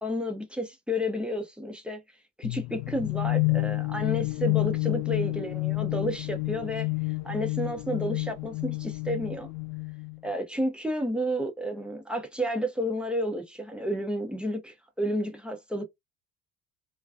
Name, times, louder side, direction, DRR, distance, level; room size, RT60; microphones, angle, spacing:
voice 1, 0.0-2.0 2.4-6.9 7.2-9.5 10.2-15.8, equal, 5° right, 0.4 m, -31 dB
sound 1, 2.4-10.2, left 28 dB, 65° left, 0.5 m, -29 dB
2.4 x 2.2 x 2.3 m
hypercardioid pair, 65°, 44 cm